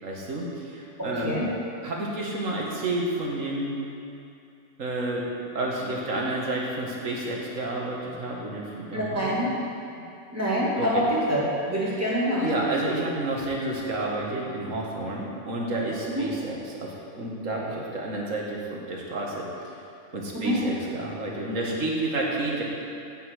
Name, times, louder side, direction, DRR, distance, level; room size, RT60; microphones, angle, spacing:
voice 1, 0.0-1.5 1.8-3.8 4.8-5.3 5.5-9.3 10.0-10.1 10.8-11.0 12.3-19.5 20.1-22.6, right 2 dB, 70° right, -2 dB, 2.0 m, -30 dB
voice 2, 1.0-1.5 8.9-9.5 10.3-11.4 11.7-12.5 16.1-16.2 20.3-20.6, equal, 10° right, -7 dB, 2.3 m, -25 dB
10.5 x 5.6 x 8.2 m, 2.7 s
omnidirectional pair, 1.4 m